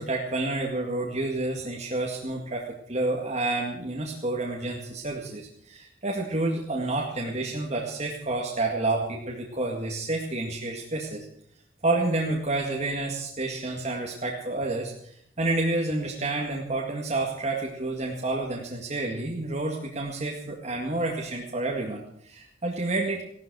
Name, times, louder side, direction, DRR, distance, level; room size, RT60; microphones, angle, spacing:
voice 1, 0.0-11.3 11.8-23.2, right 2 dB, 40° right, -1 dB, 2.0 m, -29 dB
16.0 x 12.0 x 6.3 m, 0.68 s
head